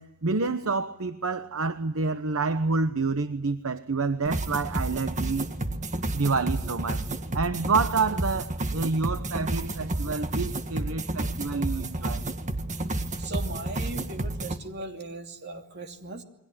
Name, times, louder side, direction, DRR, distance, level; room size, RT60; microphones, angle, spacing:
voice 1, 0.0-5.5 6.1-7.1 7.3-12.3, right 4 dB, 70° right, 1.0 m, -28 dB
sound 1, 4.3-14.6, right 2 dB, 35° right, 1.7 m, -31 dB
voice 2, 13.2-16.2, right 2 dB, 50° right, 2.9 m, -38 dB
28.5 x 23.0 x 9.1 m
head